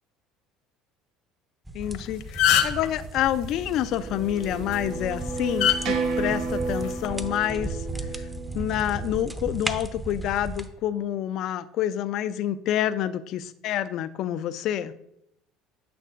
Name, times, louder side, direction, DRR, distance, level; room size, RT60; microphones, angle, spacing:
voice 1, 1.7-7.8 8.5-14.9, left 11 dB, 60° left, 13 dB, 0.4 m, -28 dB
sound 1, 1.7-10.7, right 2 dB, 10° right, 0.7 m, -36 dB
sound 2, 1.8-2.0 2.2-2.9 4.5-4.7 5.6-5.8 6.8-7.1, left 10 dB, 80° left, 0.9 m, -21 dB
sound 3, 3.6-9.3, right 4 dB, 65° right, 0.9 m, -32 dB
9.0 x 6.6 x 2.5 m, 0.78 s
supercardioid pair, 90°, 0 cm